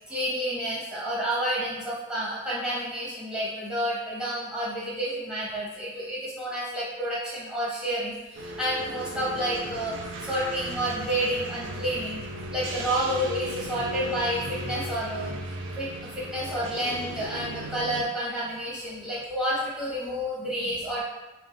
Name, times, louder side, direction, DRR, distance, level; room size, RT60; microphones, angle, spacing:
voice 1, 0.1-15.4 15.8-21.0, equal, 5° right, -8 dB, 0.8 m, -30 dB
sound 1, 8.4-18.0, right 1 dB, 80° right, 0.4 m, -36 dB
3.5 x 2.2 x 2.2 m, 1.1 s
head